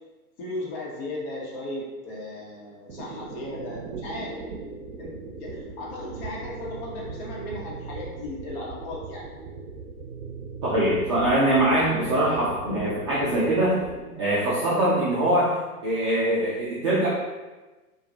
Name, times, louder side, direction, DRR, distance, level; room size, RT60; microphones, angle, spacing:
voice 1, 0.4-4.4 5.0-5.1 5.4-9.2, left 2 dB, 40° left, -4 dB, 1.2 m, -36 dB
sound 1, 2.9-14.0, right 4 dB, 65° right, 0.7 m, -39 dB
voice 2, 10.6-13.8 14.2-17.1, right 1 dB, 20° right, -9 dB, 0.3 m, -23 dB
4.5 x 2.5 x 2.8 m, 1.2 s
hypercardioid pair, 115°, 46 cm